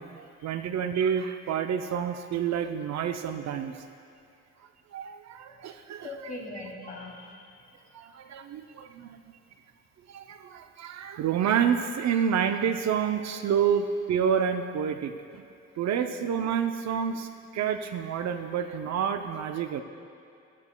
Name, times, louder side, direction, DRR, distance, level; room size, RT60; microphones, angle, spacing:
voice 1, 0.0-3.8 4.9-6.1 7.9-9.2 10.1-15.4 15.8-19.8, right 8 dB, 65° right, 8 dB, 0.6 m, -29 dB
voice 2, 6.0-7.5, left 2 dB, 25° left, -2 dB, 2.3 m, -40 dB
15.0 x 12.0 x 2.2 m, 2.5 s
cardioid pair, 90°, 30 cm